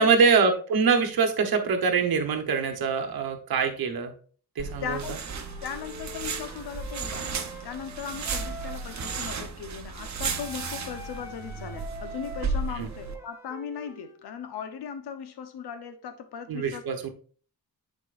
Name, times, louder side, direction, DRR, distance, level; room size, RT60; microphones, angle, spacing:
voice 1, 0.0-4.1 4.6-5.2 12.8-12.9 16.5-17.1, right 5 dB, 70° right, 1.1 m, -24 dB
sound 1, 4.6-13.1, right 4 dB, 45° right, 0.8 m, -34 dB
voice 2, 4.8-5.1 5.6-7.4 7.6-16.8, left 8 dB, 90° left, 1.0 m, -38 dB
Wind instrument woodwind instrument, 5.3-9.5 10.3-14.2, right 1 dB, 5° right, 0.9 m, -45 dB
10.0 x 4.5 x 2.5 m
wide cardioid pair, 170°, 38 cm